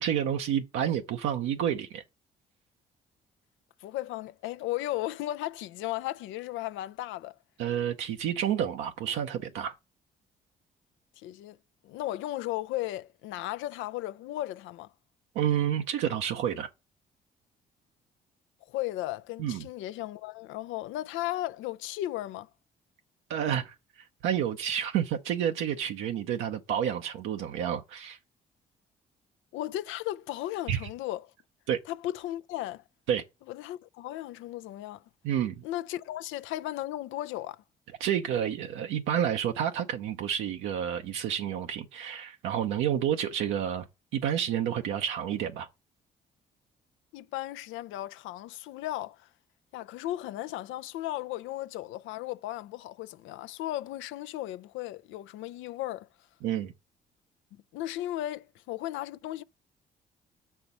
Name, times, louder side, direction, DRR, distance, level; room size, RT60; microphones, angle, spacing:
voice 1, 0.0-2.0 7.6-9.7 15.3-16.7 19.4-19.7 23.3-23.7 24.2-28.2 30.7-30.8 31.7-31.8 33.1-33.2 35.2-35.6 38.0-43.9 44.1-45.7 56.4-56.7, right 9 dB, 75° right, 0.7 m, -29 dB
voice 2, 3.8-7.4 11.2-11.6 11.8-14.9 18.7-22.5 29.5-31.3 31.9-32.8 33.5-35.0 35.6-37.6 47.1-49.3 49.7-56.1 57.5-59.4, left 15 dB, 70° left, 0.5 m, -35 dB
6.7 x 4.5 x 5.4 m
hypercardioid pair, 50°, 20 cm